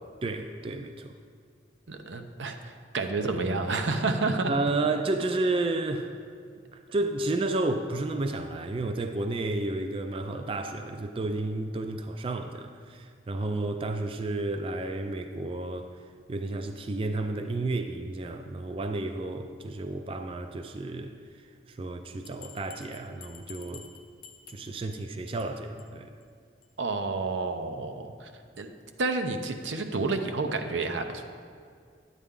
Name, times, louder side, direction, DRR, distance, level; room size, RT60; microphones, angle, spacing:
voice 1, 0.2-1.1 4.5-6.1 6.7-15.9 16.3-21.1 21.7-23.9 24.5-26.1, right 2 dB, 30° right, 6 dB, 0.3 m, -31 dB
voice 2, 1.9-4.5 26.8-28.3 28.6-28.7 29.0-31.2, right 3 dB, 85° right, 6 dB, 0.7 m, -30 dB
Bell, 22.2-25.0 25.3-25.5 25.8-25.9 26.2-26.3 26.6-26.7, left 8 dB, 50° left, 0.6 m, -49 dB
10.0 x 8.2 x 3.7 m, 2.2 s
head